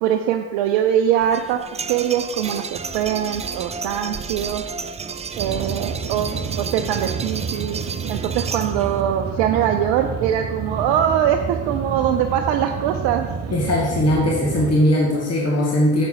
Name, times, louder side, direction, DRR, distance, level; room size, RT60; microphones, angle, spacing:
voice 1, 0.0-4.6 5.4-7.8 8.1-13.3, right 10 dB, 60° right, 5 dB, 0.8 m, -22 dB
sound 1, 1.2-9.0, right 5 dB, 15° right, 0.4 m, -32 dB
sound 2, 5.4-14.8, right 6 dB, 30° right, 1.1 m, -29 dB
voice 2, 13.5-16.1, left 1 dB, 30° left, -4 dB, 2.4 m, -19 dB
9.1 x 7.7 x 5.0 m, 1.2 s
figure-of-eight pair, 50°, 48 cm